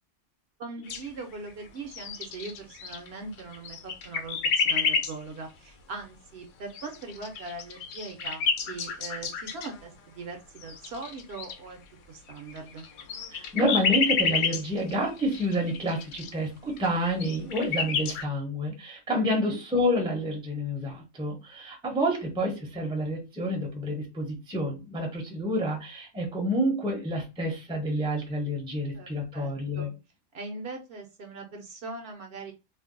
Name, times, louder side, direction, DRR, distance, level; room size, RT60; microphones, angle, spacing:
voice 1, 0.6-11.8 12.1-12.9 19.3-19.6 28.9-29.9 30.3-32.5, right 3 dB, 65° right, 3 dB, 0.8 m, -41 dB
sound 1, 0.9-1.5 1.8-3.1 3.4-5.1 6.7-9.8 10.6-11.5 12.3-16.3 16.8-16.9 17.1-18.2, left 5 dB, 80° left, 1.0 m, -29 dB
voice 2, 13.3-29.9, equal, 5° right, 1 dB, 0.5 m, -29 dB
2.5 x 2.1 x 3.7 m, 0.28 s
omnidirectional pair, 1.3 m